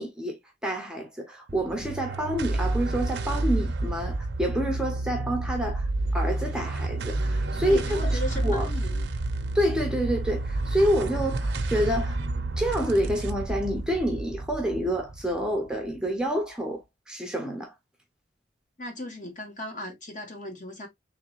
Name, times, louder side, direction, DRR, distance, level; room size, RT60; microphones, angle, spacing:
voice 1, 0.0-8.7 9.5-12.2 12.6-17.7, equal, 5° right, 0.7 m, -28 dB
sound 1, 1.5-16.1, right 2 dB, 65° right, 0.6 m, -29 dB
voice 2, 7.6-9.1 18.8-20.9, left 1 dB, 45° left, 1.4 m, -37 dB
3.5 x 3.2 x 3.1 m
head